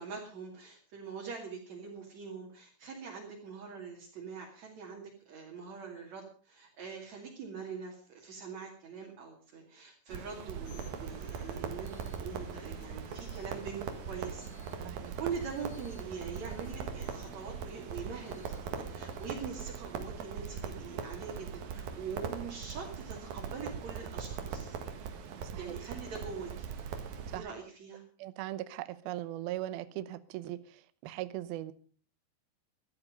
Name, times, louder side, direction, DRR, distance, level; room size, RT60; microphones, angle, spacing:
voice 1, 0.0-14.5 14.8-24.8 25.6-26.7 27.3-28.0, right 6 dB, 45° right, -2 dB, 3.2 m, -43 dB
Crackle, 10.1-27.4, right 7 dB, 60° right, 2.9 m, -41 dB
sound 1, 10.7-19.3, left 4 dB, 85° left, 1.5 m, -53 dB
voice 2, 25.4-25.7 27.3-27.5 28.2-31.7, right 15 dB, 85° right, 13 dB, 2.1 m, -39 dB
16.5 x 12.0 x 5.3 m, 0.42 s
omnidirectional pair, 5.6 m